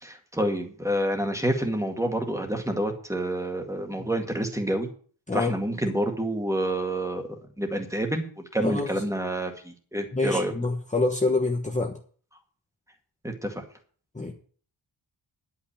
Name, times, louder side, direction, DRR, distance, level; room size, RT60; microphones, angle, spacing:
voice 1, 0.0-4.9 5.3-7.2 7.6-10.5 13.2-13.6, right 1 dB, 5° right, 4 dB, 2.0 m, -28 dB
voice 2, 10.1-11.9 14.1-14.3, left 3 dB, 15° left, 1 dB, 1.2 m, -26 dB
11.0 x 5.8 x 8.7 m, 0.44 s
wide cardioid pair, 175°, 46 cm